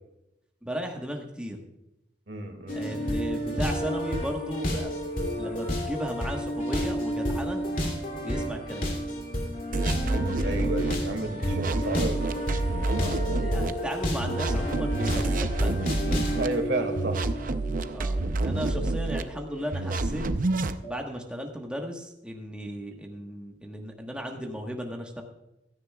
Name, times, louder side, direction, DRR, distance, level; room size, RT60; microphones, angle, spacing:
voice 1, 0.6-1.6 2.7-4.9 5.4-7.6 8.2-8.9 12.9-15.8 17.9-20.2 20.8-25.2, equal, 5° right, 1 dB, 1.3 m, -35 dB
voice 2, 2.3-3.2 10.4-12.2 16.4-17.2, right 2 dB, 75° right, 6 dB, 2.1 m, -31 dB
sound 1, 2.7-20.4 20.8-20.9, equal, 50° left, 2.6 m, -31 dB
sound 2, 9.7-11.0 11.4-13.7 14.2-16.5 17.0-19.2 19.7-20.8, right 2 dB, 50° right, 0.6 m, -28 dB
16.0 x 13.5 x 2.3 m, 0.86 s
head